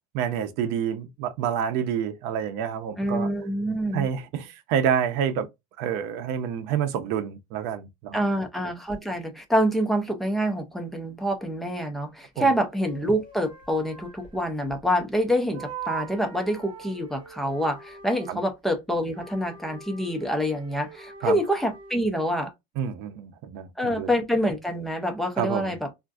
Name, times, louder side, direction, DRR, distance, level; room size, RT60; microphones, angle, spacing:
voice 1, 0.1-3.3 3.9-5.5 5.8-8.3 12.4-12.5 18.3-18.4 21.2-21.4 22.8-24.1 25.4-25.7, right 8 dB, 60° right, 0.6 m, -28 dB
voice 2, 3.0-4.1 8.1-22.5 23.8-25.9, equal, ahead, 0.5 m, -26 dB
sound 1, 8.9-9.0 12.4-15.2 15.5-18.4 19.0-22.0, right 7 dB, 25° right, 1.3 m, -42 dB
3.5 x 2.5 x 2.3 m
cardioid pair, 160°, 18 cm